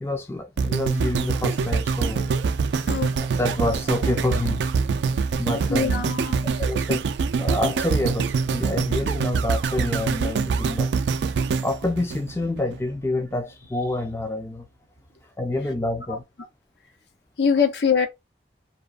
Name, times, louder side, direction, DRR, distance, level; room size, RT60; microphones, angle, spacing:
voice 1, 0.0-2.3 3.1-4.6 5.4-5.9 6.6-7.0 7.4-10.9 11.6-14.7 15.4-16.2, left 2 dB, 15° left, 0.4 m, -27 dB
sound 1, 0.6-12.8 13.3-13.4, right 5 dB, 80° right, 0.3 m, -24 dB
voice 2, 5.7-6.5 16.1-16.2 17.4-18.1, left 6 dB, 75° left, 0.6 m, -23 dB
2.8 x 2.1 x 2.3 m
head